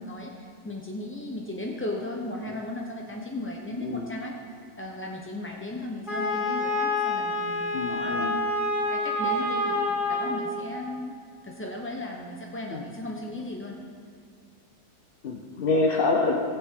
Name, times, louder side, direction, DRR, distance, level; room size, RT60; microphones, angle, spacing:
voice 1, 0.0-4.3 4.8-11.1 11.4-13.8, left 1 dB, 15° left, -1 dB, 0.4 m, -36 dB
voice 2, 3.8-4.1 7.7-8.4 12.7-12.9 15.2-16.3, left 3 dB, 50° left, 0 dB, 0.8 m, -26 dB
Wind instrument woodwind instrument, 6.1-10.6, left 2 dB, 30° left, 2.6 m, -27 dB
19.5 x 7.5 x 3.7 m, 2.4 s
omnidirectional pair, 1.6 m